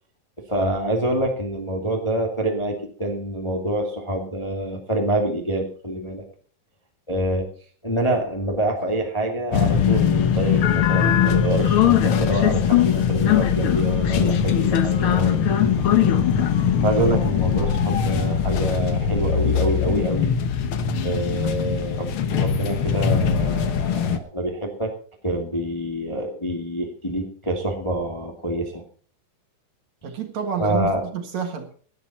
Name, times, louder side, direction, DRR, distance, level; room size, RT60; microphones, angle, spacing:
voice 1, 0.4-6.3 7.1-7.5 7.8-16.1 16.8-20.4 21.0-24.9 25.2-28.8 30.6-31.0, right 1 dB, 10° left, 1.6 m, -26 dB
sound 1, 9.5-24.2, left 8 dB, 65° left, 1.4 m, -20 dB
voice 2, 30.0-31.7, right 7 dB, 60° right, 2.7 m, -29 dB
18.5 x 11.0 x 4.3 m
omnidirectional pair, 3.9 m